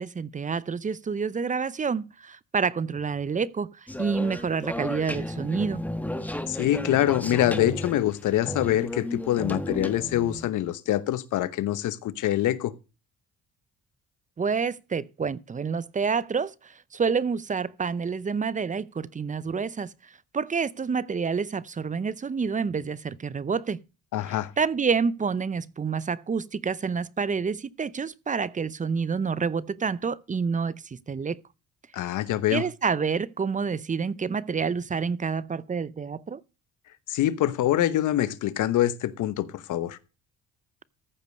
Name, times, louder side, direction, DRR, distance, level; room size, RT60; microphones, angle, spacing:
voice 1, 0.0-5.8 14.4-23.8 24.6-31.4 32.5-36.4, right 5 dB, 25° right, 0.6 m, -28 dB
sound 1, 3.9-10.5, left 1 dB, 5° left, 1.3 m, -34 dB
voice 2, 6.5-12.7 24.1-24.5 31.9-32.6 37.1-40.0, left 13 dB, 80° left, 1.0 m, -25 dB
14.5 x 5.2 x 6.5 m
cardioid pair, 90°, 30 cm